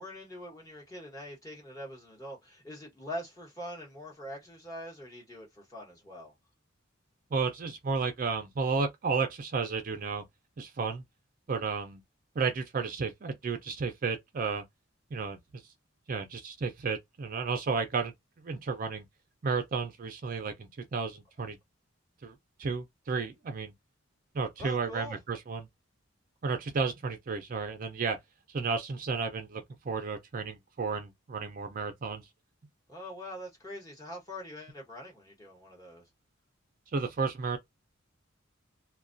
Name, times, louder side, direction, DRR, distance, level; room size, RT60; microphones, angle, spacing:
voice 1, 0.0-6.3 24.6-25.2 32.9-36.1, equal, 15° left, 1.1 m, -43 dB
voice 2, 7.3-10.2 10.6-11.0 11.5-12.0 12.4-14.6 15.1-15.4 16.1-18.1 18.4-19.1 19.4-21.6 22.2-23.7 24.3-25.7 26.4-28.2 28.5-32.2 36.9-37.6, right 4 dB, 40° right, 0.4 m, -32 dB
2.3 x 2.2 x 2.5 m
head